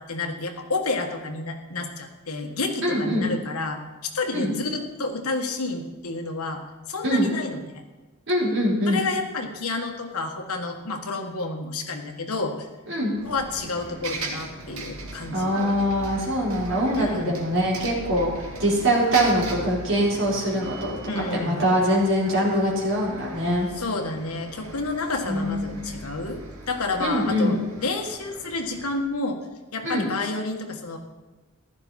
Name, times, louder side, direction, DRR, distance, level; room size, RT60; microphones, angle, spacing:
voice 1, 0.0-6.6 6.9-7.8 8.9-12.6 13.2-15.6 16.9-17.3 21.0-21.6 23.8-26.4 26.7-29.4 29.7-31.0, left 3 dB, 85° left, 4 dB, 1.7 m, -30 dB
voice 2, 2.8-3.3 4.3-4.5 7.0-7.3 8.3-9.0 12.9-13.1 15.3-18.3 18.6-23.7 25.3-25.9 27.0-27.6 29.8-30.0, equal, 60° right, -4 dB, 4.6 m, -23 dB
Bus, 13.2-29.0, right 2 dB, 85° right, 2.1 m, -38 dB
15.0 x 12.0 x 4.3 m, 1.2 s
head